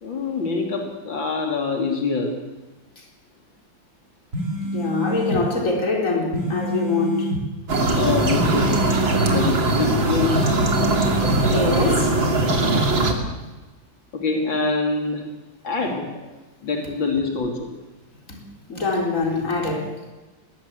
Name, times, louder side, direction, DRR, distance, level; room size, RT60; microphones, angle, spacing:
voice 1, 0.0-2.4 8.0-8.8 9.2-10.5 14.1-15.2 15.6-16.2 16.6-17.7, left 4 dB, 90° left, 3.9 m, -25 dB
sound 1, 4.3-5.4 6.3-7.4 8.3-9.4 10.3-11.4, right 1 dB, 40° right, 3.3 m, -27 dB
voice 2, 4.6-7.3 11.4-12.2 18.3-18.4 18.7-20.0, left 3 dB, 40° left, 4.7 m, -24 dB
sound 2, 7.7-13.1, right 2 dB, 85° right, 3.6 m, -20 dB
22.5 x 18.5 x 8.5 m
omnidirectional pair, 2.0 m